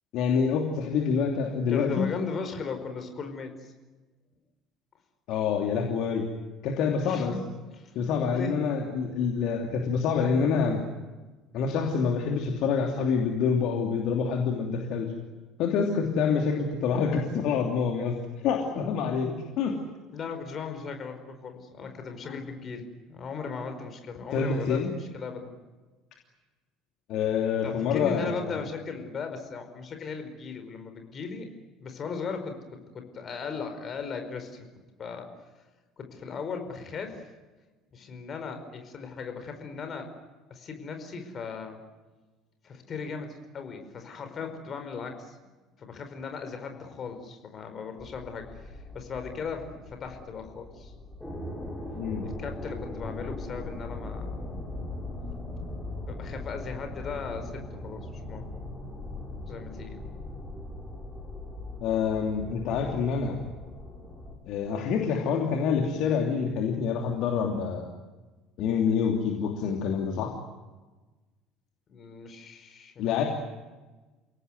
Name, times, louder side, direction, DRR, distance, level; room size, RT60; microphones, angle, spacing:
voice 1, 0.1-2.1 5.3-6.2 6.6-7.3 7.9-10.8 11.5-15.1 15.6-18.1 18.4-19.8 24.3-24.9 27.1-28.5 52.0-52.3 61.8-63.4 64.5-67.9 68.6-70.3 73.0-73.2, left 6 dB, 55° left, 2 dB, 3.0 m, -27 dB
voice 2, 1.7-3.7 7.0-7.4 7.7-7.9 8.3-8.5 20.1-25.5 27.6-31.5 31.8-34.6 35.0-35.3 36.0-37.2 37.9-40.1 40.5-41.8 42.6-45.4 45.8-50.9 52.2-54.5 56.0-58.5 59.5-60.1 62.5-62.6 71.9-73.1, left 5 dB, 40° left, 7 dB, 4.9 m, -37 dB
sound 1, 48.0-64.3, left 2 dB, ahead, 7.3 m, -39 dB
29.5 x 18.0 x 9.6 m, 1.2 s
figure-of-eight pair, 60°, 0 cm